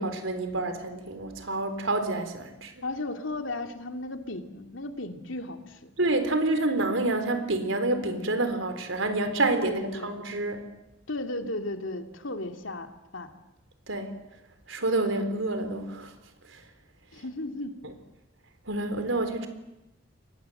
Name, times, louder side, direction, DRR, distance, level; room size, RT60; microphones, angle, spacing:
voice 1, 0.0-2.7 6.0-10.7 13.9-14.1 14.7-16.1 16.5-16.6 18.7-19.5, right 2 dB, 90° right, 8 dB, 3.9 m, -28 dB
voice 2, 2.8-5.9 9.6-10.2 11.1-13.3 17.1-17.8, left 2 dB, 85° left, 5 dB, 2.7 m, -35 dB
30.0 x 23.5 x 7.9 m, 0.93 s
head